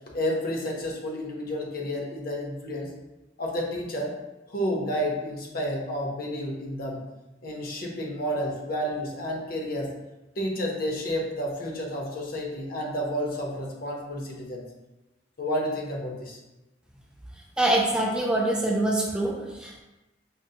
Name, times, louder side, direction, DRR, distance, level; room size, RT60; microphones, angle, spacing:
voice 1, 0.1-2.9 3.4-4.1 4.5-7.0 7.4-9.9 10.4-14.6 15.4-16.4, equal, 55° left, -1 dB, 0.8 m, -30 dB
voice 2, 17.6-19.8, right 1 dB, 5° right, -2 dB, 0.5 m, -25 dB
5.2 x 2.1 x 2.7 m, 1.0 s
head